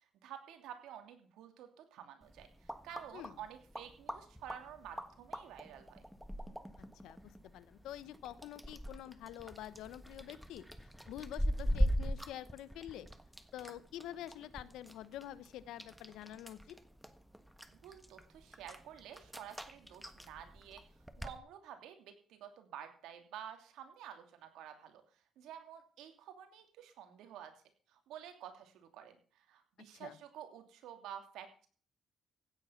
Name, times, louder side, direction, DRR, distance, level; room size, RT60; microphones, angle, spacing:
voice 1, 0.0-6.0 17.8-20.8 21.2-25.0 25.4-27.5 27.9-31.7, right 9 dB, 90° right, 6 dB, 2.8 m, -51 dB
sound 1, 2.2-21.4, equal, ahead, 1.4 m, -41 dB
voice 2, 6.8-10.7 11.1-13.1 13.5-16.8 29.9-30.2, left 12 dB, 90° left, 17 dB, 1.0 m, -47 dB
16.0 x 9.1 x 5.8 m, 0.43 s
cardioid pair, 90°, 0 cm